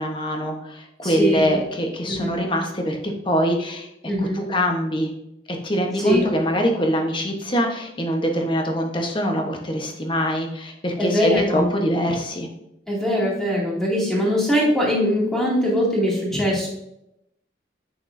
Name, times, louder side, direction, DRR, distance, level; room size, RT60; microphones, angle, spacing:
voice 1, 0.0-3.9 4.2-5.1 5.5-12.5 16.3-16.4, equal, 25° left, 2 dB, 1.1 m, -24 dB
voice 2, 1.0-1.5 2.1-2.3 4.1-4.4 6.0-6.2 11.0-11.7 12.9-16.7, equal, 5° left, -6 dB, 2.4 m, -21 dB
9.0 x 6.3 x 2.6 m, 0.83 s
head